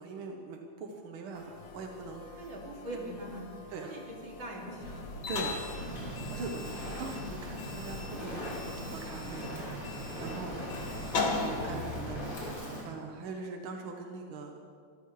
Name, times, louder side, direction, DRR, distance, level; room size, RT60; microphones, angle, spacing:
voice 1, 0.0-2.5 3.7-3.9 5.3-9.5 10.2-10.7 11.3-12.2 12.8-14.5, right 3 dB, 65° right, 2 dB, 1.3 m, -42 dB
sound 1, 1.3-8.9, left 4 dB, 90° left, 2.8 m, -50 dB
voice 2, 2.2-5.1 10.6-10.7, right 1 dB, 40° right, -2 dB, 3.0 m, -42 dB
sound 2, 4.8-12.5, left 3 dB, 45° left, 2.0 m, -38 dB
Fire, 5.7-12.8, equal, 25° left, 5.0 m, -40 dB
25.0 x 14.0 x 3.2 m, 2.1 s
omnidirectional pair, 3.5 m